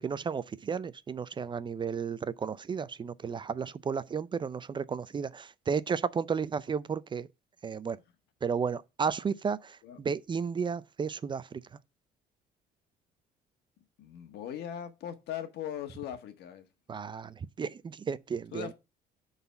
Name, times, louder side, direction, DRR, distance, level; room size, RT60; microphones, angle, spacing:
voice 1, 0.0-7.3 7.6-8.0 8.4-11.6 16.9-18.7, right 6 dB, 30° right, 0.5 m, -33 dB
voice 2, 14.0-16.7 18.5-18.7, left 10 dB, 75° left, 1.6 m, -39 dB
9.3 x 4.1 x 5.8 m
cardioid pair, 110°, 17 cm